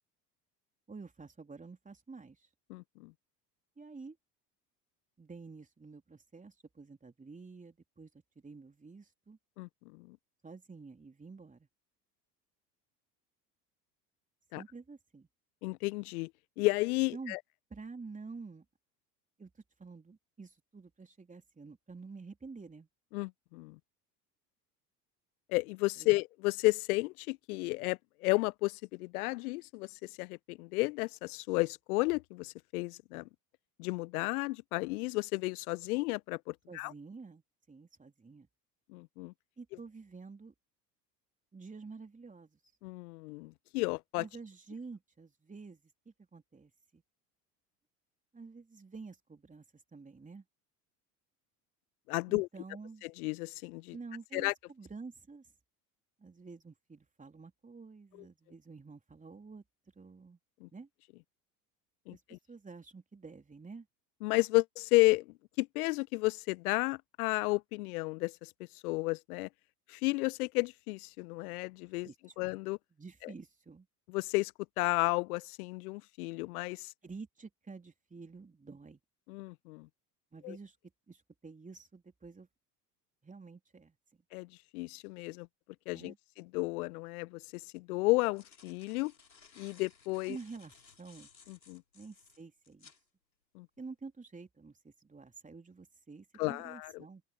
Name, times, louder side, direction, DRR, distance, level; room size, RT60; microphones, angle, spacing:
voice 1, 0.9-2.5 3.8-4.2 5.2-9.4 10.4-11.7 14.6-15.3 17.1-17.4 17.7-18.7 19.4-19.5 19.8-22.9 26.0-26.1 36.7-38.5 39.6-40.5 41.5-42.6 44.2-47.0 48.3-50.4 52.3-53.0 53.9-55.5 56.2-59.6 60.0-60.4 60.7-60.9 62.1-62.2 62.5-63.9 72.0-72.5 72.9-73.9 77.0-79.0 80.3-80.8 81.1-82.5 83.2-84.0 85.9-86.2 90.3-91.3 91.9-92.9 93.8-97.2, right 4 dB, 15° right, 3.7 m, -49 dB
voice 2, 2.7-3.1 9.6-10.2 14.5-14.6 15.6-16.3 16.6-17.4 23.1-23.8 25.5-33.3 33.8-36.9 38.9-39.3 42.8-44.2 52.1-52.5 53.0-54.0 54.3-54.5 60.6-60.7 62.1-62.4 64.2-68.5 68.8-69.5 69.9-72.1 72.4-72.8 74.1-76.9 79.3-79.9 80.4-80.6 84.3-85.5 85.9-89.1 89.6-90.4 91.5-91.8 93.5-93.7 96.4-97.0, left 23 dB, 60° left, 0.8 m, -33 dB
sound 1, 87.0-87.1 88.0-93.0, left 5 dB, 85° left, 5.5 m, -60 dB
open air
figure-of-eight pair, 70°, 49 cm